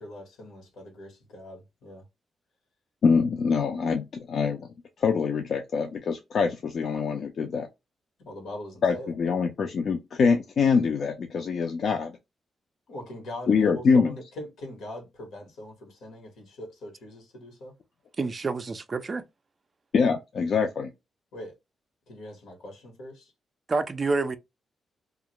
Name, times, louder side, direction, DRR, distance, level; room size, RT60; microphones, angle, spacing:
voice 1, 0.0-2.0 8.2-9.2 12.9-17.7 21.3-21.5 22.1-23.3, left 1 dB, 85° left, 1.1 m, -41 dB
voice 2, 3.0-4.7 5.0-7.7 8.8-12.2 13.5-14.1 19.9-20.9, left 5 dB, 60° left, 0.4 m, -24 dB
voice 3, 18.2-19.2 23.7-24.4, right 3 dB, 35° right, 0.3 m, -28 dB
2.3 x 2.1 x 2.9 m
cardioid pair, 110°, 0 cm